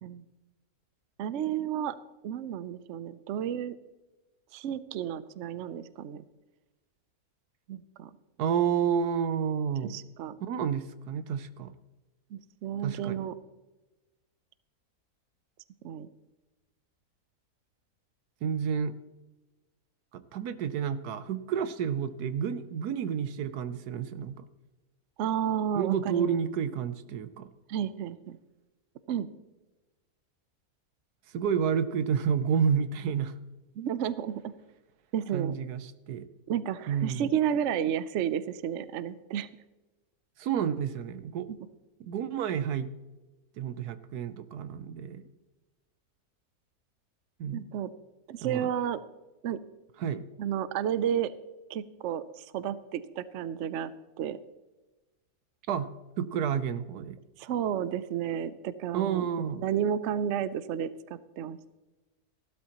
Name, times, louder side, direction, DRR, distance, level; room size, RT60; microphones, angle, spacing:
voice 1, 1.2-2.0 2.2-3.8 4.5-6.2 7.7-8.1 9.9-10.4 12.3-13.3 15.8-16.1 25.2-26.4 27.7-28.4 29.1-29.3 33.8-34.5 35.1-35.6 36.5-39.5 47.5-47.9 48.3-49.0 49.4-49.6 50.4-51.3 51.7-53.9 54.2-54.4 57.4-61.8, right 9 dB, 65° right, 15 dB, 0.8 m, -32 dB
voice 2, 8.4-10.0 10.4-11.7 12.8-13.3 18.4-18.9 20.1-24.4 25.7-27.5 31.3-33.3 35.3-36.3 36.9-37.3 40.4-41.5 42.0-42.9 43.6-45.2 47.4-47.7 48.4-48.7 50.0-50.2 55.7-57.2 58.9-59.6, right 7 dB, 80° right, 12 dB, 1.3 m, -30 dB
15.5 x 12.0 x 3.0 m, 1.1 s
omnidirectional pair, 1.6 m